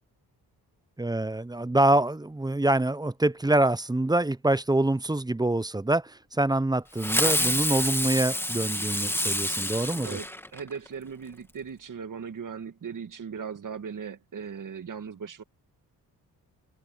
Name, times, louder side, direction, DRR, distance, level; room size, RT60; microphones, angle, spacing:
voice 1, 1.0-10.2, right 2 dB, 10° right, 0.8 m, -25 dB
Fireworks, 7.0-10.9, left 1 dB, 5° left, 2.5 m, -28 dB
voice 2, 10.0-15.4, right 6 dB, 50° right, 2.2 m, -38 dB
open air
cardioid pair, 70°, 39 cm